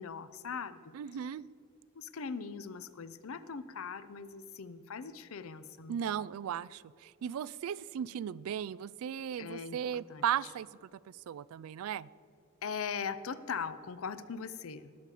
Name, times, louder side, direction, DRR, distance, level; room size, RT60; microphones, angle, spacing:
voice 1, 0.0-0.9 1.9-6.0 9.4-10.5 12.6-14.9, left 6 dB, 65° left, 14 dB, 0.6 m, -40 dB
voice 2, 0.9-1.5 5.9-10.7 11.1-12.1, right 9 dB, 70° right, 21 dB, 0.3 m, -36 dB
19.0 x 6.8 x 4.9 m, 2.4 s
head